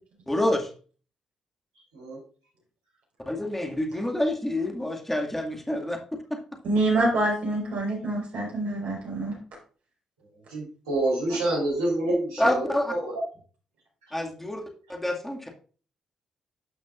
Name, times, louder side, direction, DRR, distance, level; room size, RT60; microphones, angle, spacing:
voice 1, 0.3-0.7 3.3-6.0 6.3-6.4 12.4-12.9 14.1-14.6 14.9-15.6, left 1 dB, 10° left, 2 dB, 2.1 m, -27 dB
voice 2, 6.6-9.4, right 2 dB, 65° right, -1 dB, 4.7 m, -26 dB
voice 3, 10.5-12.7 13.0-13.3 14.1-14.2, right 1 dB, 90° right, -3 dB, 3.6 m, -27 dB
12.5 x 5.9 x 2.5 m, 0.40 s
hypercardioid pair, 45°, 2 cm